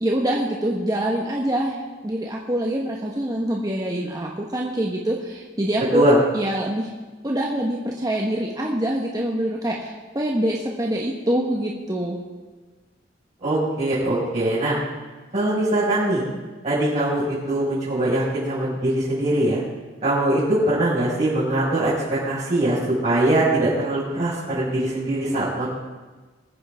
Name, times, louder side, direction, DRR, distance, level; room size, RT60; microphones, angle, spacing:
voice 1, 0.0-6.1 6.3-6.9 7.2-12.2, right 1 dB, 20° right, -2 dB, 1.2 m, -25 dB
voice 2, 13.4-14.7 15.3-16.2 16.6-19.6 20.0-25.7, right 1 dB, 40° right, -11 dB, 5.2 m, -22 dB
22.5 x 9.5 x 3.6 m, 1.3 s
head